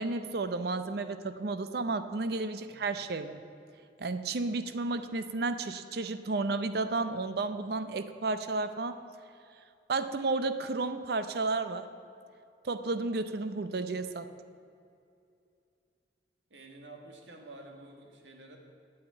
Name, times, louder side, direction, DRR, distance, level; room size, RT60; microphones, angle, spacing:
voice 1, 0.0-3.4 4.0-9.0 9.9-11.9 12.6-14.3, right 3 dB, 60° right, 10 dB, 0.6 m, -32 dB
voice 2, 16.5-18.6, right 2 dB, 85° right, 3 dB, 1.7 m, -50 dB
8.6 x 8.1 x 9.2 m, 2.5 s
head